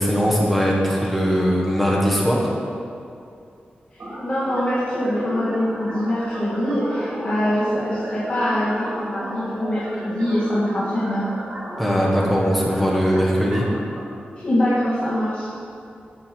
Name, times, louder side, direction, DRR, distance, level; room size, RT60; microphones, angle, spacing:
voice 1, 0.0-2.5 11.8-13.7, equal, ahead, -4 dB, 1.4 m, -20 dB
sound 1, 4.0-14.0, right 1 dB, 65° right, 2.4 m, -34 dB
voice 2, 4.2-11.2 14.4-15.5, equal, 40° left, -11 dB, 2.0 m, -23 dB
9.1 x 5.4 x 6.0 m, 2.5 s
wide cardioid pair, 175°, 4 cm